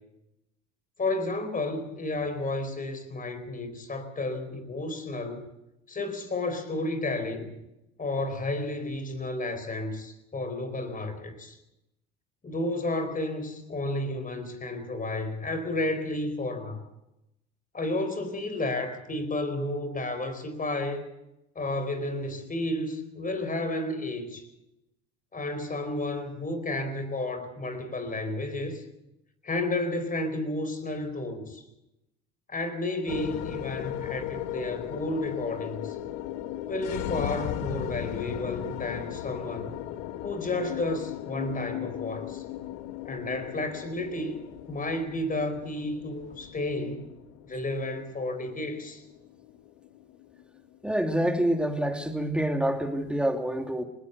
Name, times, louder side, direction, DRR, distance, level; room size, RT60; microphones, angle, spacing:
voice 1, 1.0-5.4 5.9-7.5 8.0-11.6 12.4-16.8 17.7-21.0 21.5-24.5 25.3-28.8 29.4-31.6 32.5-36.0 36.7-39.8 40.2-42.4 43.0-44.4 44.7-47.0 47.4-49.0, left 2 dB, 25° left, 9 dB, 4.4 m, -32 dB
sound 1, 33.1-51.5, left 13 dB, 70° left, 1.5 m, -37 dB
voice 2, 50.8-53.8, right 1 dB, 5° right, 5 dB, 2.8 m, -27 dB
20.0 x 20.0 x 6.9 m, 0.90 s
hypercardioid pair, 80°, 34 cm